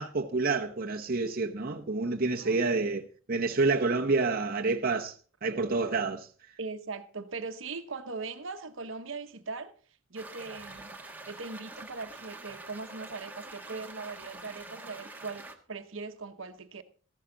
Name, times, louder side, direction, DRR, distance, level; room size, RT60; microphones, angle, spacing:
voice 1, 0.0-5.1 5.4-6.3, right 3 dB, 45° right, 0.9 m, -28 dB
voice 2, 6.6-9.7 10.1-10.9 11.3-16.8, right 4 dB, 70° right, 1.0 m, -40 dB
sound 1, 10.2-15.6, right 2 dB, 10° right, 1.3 m, -46 dB
14.5 x 11.5 x 3.9 m
head